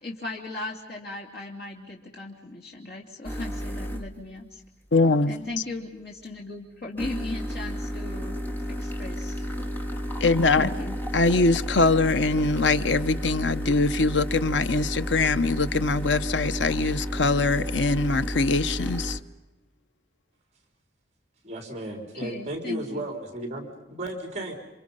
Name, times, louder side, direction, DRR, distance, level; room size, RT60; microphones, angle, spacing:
voice 1, 0.0-4.6 5.3-8.4 8.8-9.4 10.6-10.9 22.1-23.1, left 2 dB, 60° left, 3.0 m, -37 dB
Espresso Machine (Automatic), 3.2-4.2 7.0-19.2, equal, 10° left, 1.6 m, -32 dB
voice 2, 4.9-5.3 10.2-10.7 11.1-19.2, left 3 dB, 75° left, 0.8 m, -23 dB
voice 3, 21.4-24.5, right 1 dB, 40° right, 3.7 m, -34 dB
28.5 x 26.0 x 5.5 m
head